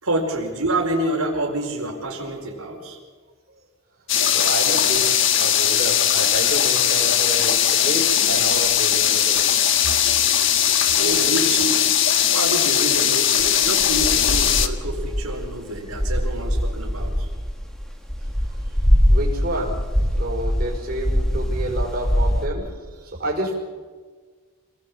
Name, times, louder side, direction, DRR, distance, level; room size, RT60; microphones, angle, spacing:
voice 1, 0.0-3.0 11.0-11.9 12.3-17.3, right 1 dB, 80° right, 0 dB, 4.6 m, -27 dB
sound 1, 4.1-14.7, left 10 dB, 55° left, 1.4 m, -19 dB
voice 2, 4.3-5.1 5.4-9.5 18.4-18.7 19.1-19.8 20.1-23.5, right 1 dB, 40° right, -1 dB, 5.1 m, -29 dB
sound 2, 13.4-22.5, equal, ahead, 2.2 m, -23 dB
26.5 x 19.5 x 7.5 m, 1.5 s
head